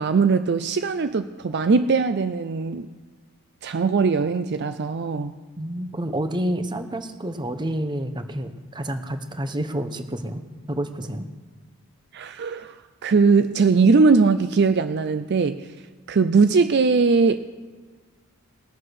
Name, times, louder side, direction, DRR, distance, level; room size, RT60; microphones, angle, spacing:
voice 1, 0.0-2.9 3.6-5.3 12.1-12.8 13.0-15.7 16.1-17.4, right 4 dB, 50° right, 10 dB, 0.4 m, -20 dB
voice 2, 5.6-10.4 10.7-11.3, right 1 dB, 20° right, 9 dB, 0.9 m, -29 dB
20.0 x 7.4 x 6.4 m, 1.5 s
head